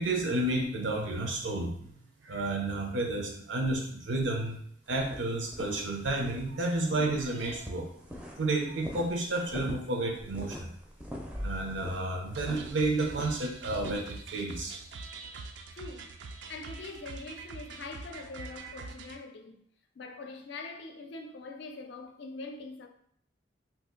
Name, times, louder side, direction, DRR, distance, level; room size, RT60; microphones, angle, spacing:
voice 1, 0.0-2.0 2.2-4.6 4.9-7.9 8.4-10.7 11.3-14.8, right 2 dB, 85° right, 0.7 m, -31 dB
sound 1, 4.9-6.4 6.7-8.5 8.8-14.0, equal, 5° right, 0.4 m, -41 dB
sound 2, 12.3-19.2, right 4 dB, 65° right, 0.4 m, -44 dB
voice 2, 15.7-16.1 16.5-19.6 20.0-22.9, left 3 dB, 65° left, 0.5 m, -43 dB
2.8 x 2.5 x 3.7 m
head